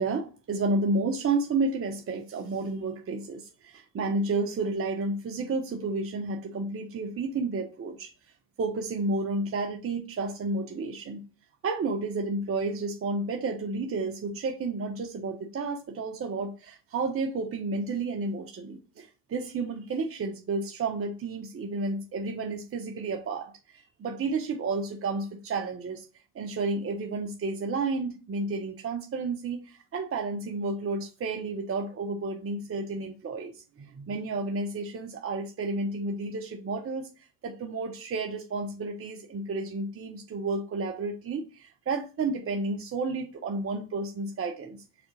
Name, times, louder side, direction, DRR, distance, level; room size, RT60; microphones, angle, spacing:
voice 1, 0.0-8.1 8.6-11.2 11.6-26.0 26.3-37.1 37.4-44.8, right 3 dB, 25° right, 2 dB, 1.0 m, -31 dB
4.9 x 4.3 x 4.9 m, 0.33 s
figure-of-eight pair, 55°, 49 cm